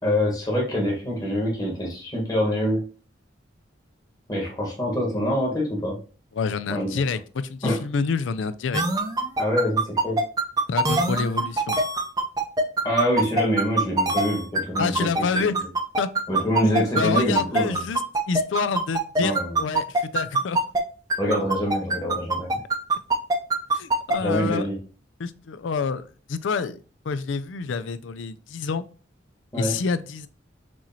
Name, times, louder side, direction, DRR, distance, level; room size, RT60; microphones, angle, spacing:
voice 1, 0.0-2.8 4.3-6.0 6.7-7.0 7.6-7.8 9.4-10.2 12.8-15.1 15.3-15.4 16.3-17.9 19.2-19.6 21.2-22.6 24.2-24.8 29.5-29.8, equal, 20° left, -2 dB, 1.4 m, -25 dB
voice 2, 6.3-8.8 10.7-11.8 14.8-15.7 16.0-16.1 16.7-18.0 18.3-20.6 23.7-24.7 25.2-28.8 29.5-30.3, left 5 dB, 80° left, 14 dB, 0.4 m, -28 dB
sound 1, 8.7-20.8 21.1-24.1, right 2 dB, 20° right, 0.5 m, -22 dB
6.2 x 3.1 x 2.8 m, 0.38 s
head